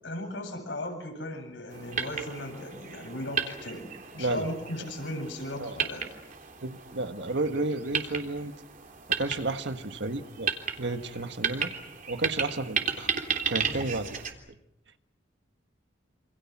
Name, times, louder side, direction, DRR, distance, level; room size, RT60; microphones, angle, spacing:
voice 1, 0.0-6.1, left 1 dB, 85° left, 3 dB, 7.8 m, -37 dB
sound 1, 1.7-14.3, right 6 dB, 45° right, 3.3 m, -34 dB
voice 2, 4.2-4.5 5.6-5.7 6.6-8.5 9.1-10.5 10.8-11.7 12.1-13.1 13.5-14.2, right 2 dB, 70° right, 8 dB, 1.7 m, -32 dB
28.0 x 27.0 x 6.1 m, 0.86 s
head